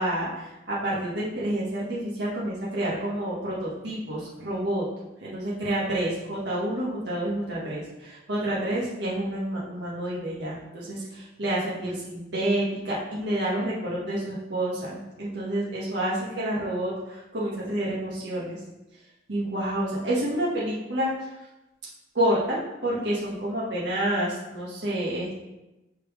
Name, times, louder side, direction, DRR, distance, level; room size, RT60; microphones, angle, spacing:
voice 1, 0.0-4.8 5.2-18.6 19.3-21.3 22.1-25.4, right 1 dB, 70° right, -7 dB, 1.6 m, -29 dB
5.2 x 4.5 x 5.0 m, 0.98 s
head